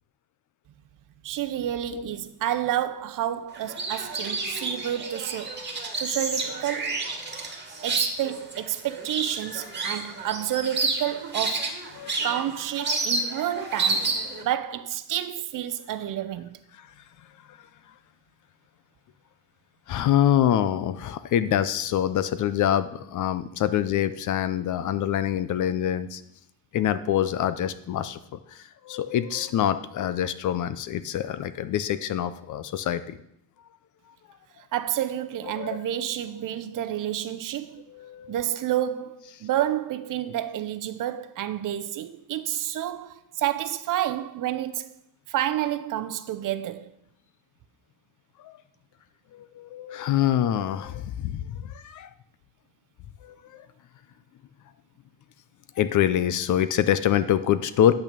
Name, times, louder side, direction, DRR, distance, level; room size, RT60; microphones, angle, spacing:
voice 1, 1.2-5.6 6.0-7.0 7.8-11.8 12.2-14.1 14.4-16.6 34.7-37.8 38.3-45.0 45.3-46.9, right 12 dB, 45° right, 0.7 m, -29 dB
sound 1, 3.5-14.4, right 3 dB, 25° right, 1.9 m, -30 dB
voice 2, 19.9-26.2 26.7-28.2 28.8-33.0 35.6-35.8 37.9-38.3 48.4-48.5 49.3-52.1 53.2-53.6 55.8-57.9, left 10 dB, 40° left, 0.6 m, -25 dB
8.9 x 5.9 x 6.8 m
cardioid pair, 135°, 46 cm